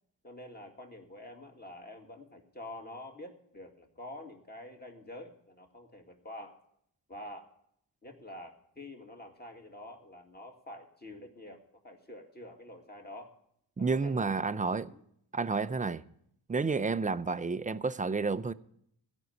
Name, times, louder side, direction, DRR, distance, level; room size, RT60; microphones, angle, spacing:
voice 1, 0.2-6.6 7.1-7.5 8.0-13.3 13.8-14.4 14.9-15.0, left 1 dB, 20° left, 2.2 m, -47 dB
voice 2, 13.8-14.9 15.3-16.0 16.5-18.5, right 4 dB, 20° right, 0.5 m, -30 dB
15.5 x 5.4 x 9.2 m
cardioid pair, 75°, 43 cm